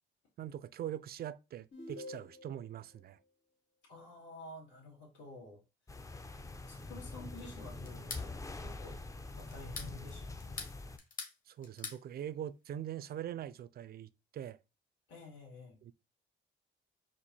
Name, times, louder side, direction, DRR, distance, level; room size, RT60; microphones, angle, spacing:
voice 1, 0.4-3.2 11.5-14.6 15.8-15.9, right 10 dB, 50° right, 0.4 m, -42 dB
sound 1, 1.7-2.8, left 1 dB, 85° left, 2.1 m, -47 dB
voice 2, 3.9-5.6 6.6-8.3 8.6-9.0 9.3-10.5 15.1-15.8, left 2 dB, 65° left, 2.3 m, -51 dB
sound 2, 5.9-11.0, left 2 dB, 15° left, 0.5 m, -44 dB
sound 3, 7.9-8.3 9.5-9.9 10.4-11.4 11.6-12.0, left 4 dB, 45° left, 1.5 m, -43 dB
4.4 x 2.5 x 4.1 m
cardioid pair, 90°, 20 cm